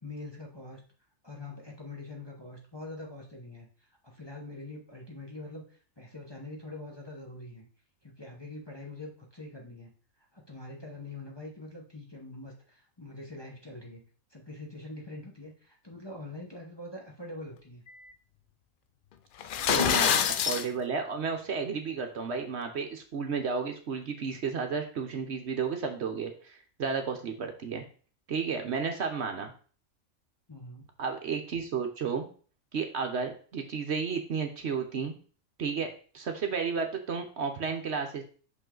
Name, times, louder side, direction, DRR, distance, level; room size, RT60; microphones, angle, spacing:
voice 1, 0.0-0.8 1.2-7.7 8.0-9.9 10.2-14.0 14.3-17.8 30.5-30.9, left 2 dB, 20° left, -1 dB, 1.0 m, -44 dB
sound 1, 19.4-20.7, left 8 dB, 85° left, 0.4 m, -25 dB
voice 2, 19.7-27.8 28.3-29.5 31.0-32.3 32.7-35.1 35.6-38.2, right 5 dB, 60° right, 5 dB, 1.0 m, -32 dB
6.1 x 5.3 x 3.8 m, 0.42 s
omnidirectional pair, 1.4 m